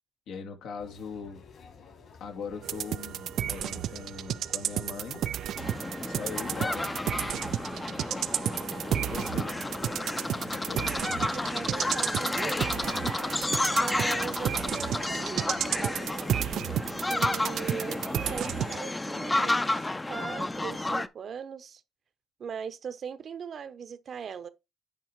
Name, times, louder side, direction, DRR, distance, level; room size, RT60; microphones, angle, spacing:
voice 1, 0.3-1.4 2.2-5.2 6.0-6.9 7.8-8.4 9.0-9.6 10.5-11.2, left 5 dB, 85° left, 2.4 m, -40 dB
sound 1, 0.8-17.2, left 5 dB, 60° left, 3.6 m, -53 dB
sound 2, 2.6-18.8, right 10 dB, 75° right, 0.4 m, -33 dB
sound 3, 5.6-21.1, left 2 dB, 15° left, 0.6 m, -31 dB
voice 2, 10.9-12.5 13.7-16.0 17.1-21.8 22.4-24.5, right 7 dB, 55° right, 0.9 m, -40 dB
10.0 x 3.7 x 4.7 m
cardioid pair, 90°, 0 cm